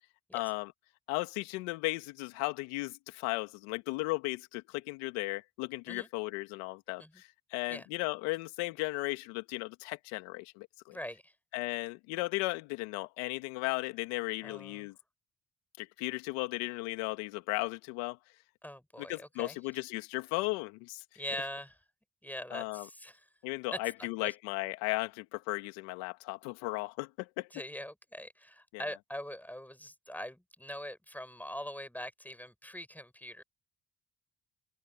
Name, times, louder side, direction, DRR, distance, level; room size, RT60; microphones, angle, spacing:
voice 1, 0.3-0.7 1.1-11.0 11.5-14.9 15.8-18.2 19.0-21.0 22.5-22.9 23.4-27.5 28.7-28.8, left 23 dB, 85° left, 2.0 m, -36 dB
voice 2, 10.9-11.3 14.4-14.9 18.6-19.8 21.2-21.8 22.2-23.2 24.0-24.3 27.5-33.4, equal, 5° left, 5.9 m, -43 dB
hypercardioid pair, 45°, 45 cm